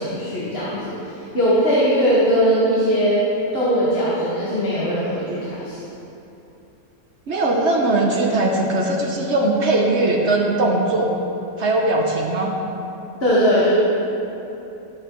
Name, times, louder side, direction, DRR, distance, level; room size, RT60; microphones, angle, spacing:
voice 1, 0.0-3.2 3.5-5.8 13.2-13.7, equal, 45° left, -8 dB, 1.8 m, -20 dB
voice 2, 7.3-11.2 11.6-12.5, right 2 dB, 55° right, 0 dB, 1.1 m, -20 dB
13.0 x 8.8 x 3.1 m, 3.0 s
omnidirectional pair, 1.5 m